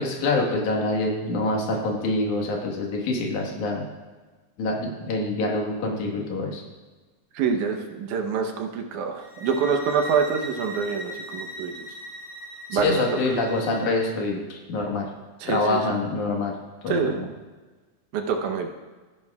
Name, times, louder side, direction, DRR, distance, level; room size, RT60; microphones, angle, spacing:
voice 1, 0.0-3.8 4.6-6.6 12.7-15.0 15.5-16.5 16.8-17.3, left 2 dB, 85° left, 0 dB, 3.0 m, -26 dB
voice 2, 7.3-11.9 12.7-13.0 15.4-15.8 16.9-17.2 18.1-18.7, right 6 dB, 90° right, 4 dB, 2.4 m, -26 dB
sound 1, 9.2-14.1, equal, 50° left, 1.2 m, -39 dB
15.0 x 10.5 x 2.3 m, 1.3 s
omnidirectional pair, 3.4 m